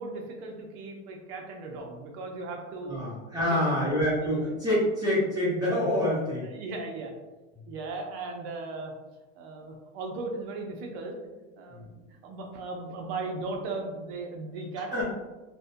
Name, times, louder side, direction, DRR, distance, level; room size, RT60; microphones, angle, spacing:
voice 1, 0.0-3.0 3.4-3.9 4.4-4.5 6.4-7.1 7.7-8.9 9.4-11.2 11.6-15.0, right 3 dB, 55° right, 2 dB, 0.6 m, -37 dB
voice 2, 2.8-6.5 11.7-11.8 14.9-15.0, left 1 dB, 10° right, -10 dB, 0.8 m, -26 dB
2.5 x 2.1 x 2.5 m, 1.2 s
supercardioid pair, 140°, 36 cm